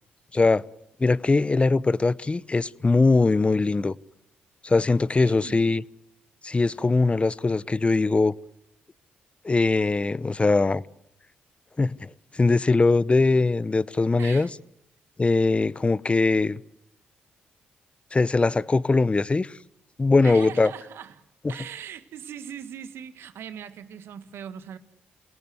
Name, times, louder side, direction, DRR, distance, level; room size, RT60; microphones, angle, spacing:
voice 1, 0.3-0.6 1.0-3.9 4.6-5.8 6.4-8.3 9.4-10.8 11.8-12.0 12.3-14.5 15.2-16.6 18.1-19.5 20.0-20.7, left 3 dB, 30° left, 0.8 m, -21 dB
voice 2, 5.2-5.6 14.2-14.5 20.2-24.8, right 8 dB, 75° right, 1.7 m, -40 dB
28.5 x 18.0 x 8.0 m
supercardioid pair, 50°, 4 cm